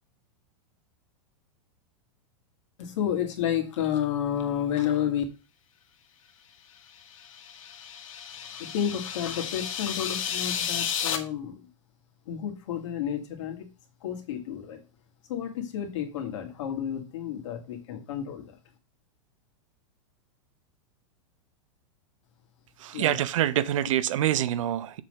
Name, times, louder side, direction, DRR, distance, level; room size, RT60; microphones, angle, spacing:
voice 1, 2.8-5.2 8.5-11.7 12.3-13.7 14.0-14.8 15.3-18.6 22.9-23.2, left 9 dB, 65° left, 2.2 m, -31 dB
sound 1, 7.0-11.2, left 8 dB, 85° left, 1.4 m, -33 dB
voice 2, 22.8-25.0, right 12 dB, 75° right, 0.7 m, -26 dB
7.2 x 3.8 x 6.5 m
supercardioid pair, 155°, 17 cm